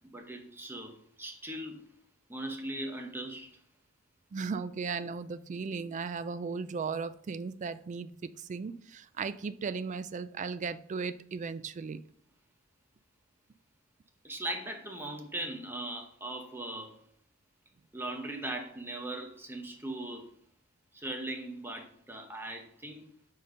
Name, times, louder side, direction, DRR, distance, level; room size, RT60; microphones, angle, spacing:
voice 1, 0.1-1.8 2.3-3.5 14.2-17.0 17.9-20.3 20.9-23.1, right 1 dB, 10° right, 2 dB, 0.9 m, -39 dB
voice 2, 4.3-12.0, right 5 dB, 35° right, 13 dB, 0.3 m, -36 dB
5.2 x 4.2 x 5.0 m, 0.63 s
head